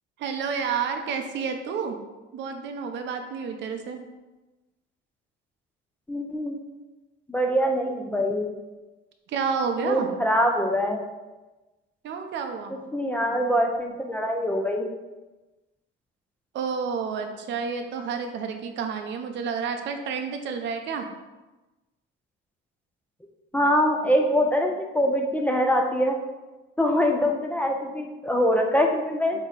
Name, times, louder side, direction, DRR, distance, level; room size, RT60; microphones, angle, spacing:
voice 1, 0.2-2.0 2.3-4.0 9.3-10.1 12.0-12.7 16.5-21.0, right 6 dB, 60° right, 5 dB, 0.8 m, -30 dB
voice 2, 6.1-6.6 7.3-8.5 9.8-11.0 12.9-14.9 23.5-26.2 26.8-29.4, equal, 5° left, 2 dB, 0.5 m, -23 dB
8.2 x 3.0 x 4.1 m, 1.1 s
cardioid pair, 135°, 21 cm